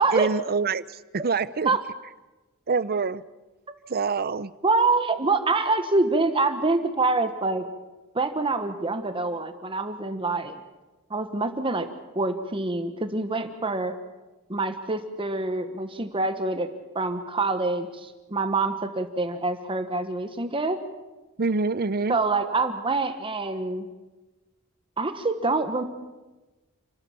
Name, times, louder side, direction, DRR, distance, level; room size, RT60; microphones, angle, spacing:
voice 1, 0.0-1.8 2.7-3.2 3.9-4.5 21.4-22.2, right 4 dB, 45° right, 17 dB, 0.7 m, -26 dB
voice 2, 4.6-7.6 8.1-10.6 11.1-11.9 12.1-13.9 14.5-16.7 16.9-20.8 22.1-23.9 25.0-25.8, right 3 dB, 25° right, 8 dB, 1.3 m, -25 dB
29.0 x 13.0 x 8.7 m, 1.1 s
head